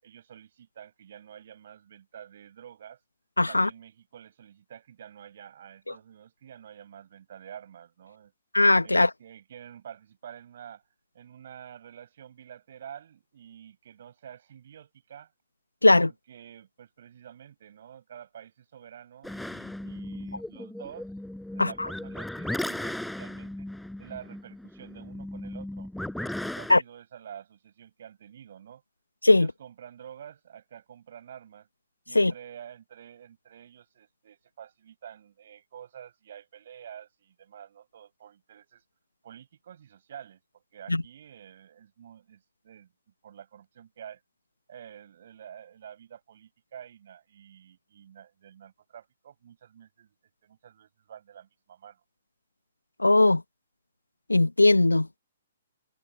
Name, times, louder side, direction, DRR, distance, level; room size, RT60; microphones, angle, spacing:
voice 1, 0.0-3.0 3.5-8.3 8.8-10.8 11.1-15.3 16.0-21.1 21.5-23.7 24.0-28.8 29.3-31.7 32.1-38.8 39.2-42.9 43.2-44.2 44.7-50.1 50.4-52.0, right 9 dB, 50° right, 7.6 m, -48 dB
voice 2, 3.4-3.7 8.5-9.1 15.8-16.1 21.6-21.7 26.7-26.8 29.2-29.5 32.1-32.3 40.9-41.0 53.0-53.4 54.3-55.2, left 2 dB, 85° left, 1.5 m, -19 dB
sound 1, 19.2-26.8, left 1 dB, ahead, 7.9 m, -36 dB
figure-of-eight pair, 120°, 0 cm